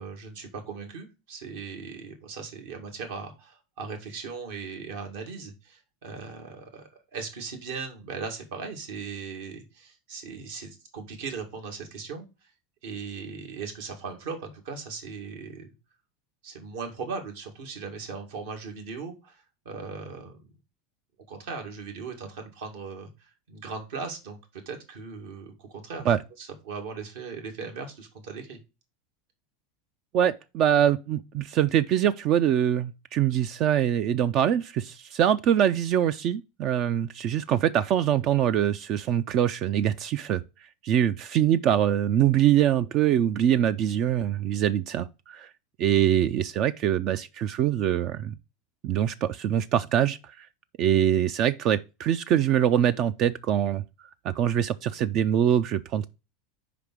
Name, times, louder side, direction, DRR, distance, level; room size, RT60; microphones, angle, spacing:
voice 1, 0.0-12.5 12.8-15.7 16.4-20.5 21.3-28.6, right 5 dB, 75° right, 2.2 m, -38 dB
voice 2, 30.1-40.4 40.8-45.5 45.8-48.3 48.8-50.5 50.8-53.8 54.2-56.1, right 10 dB, 50° right, 0.4 m, -24 dB
5.0 x 4.9 x 6.1 m
hypercardioid pair, 105°, 0 cm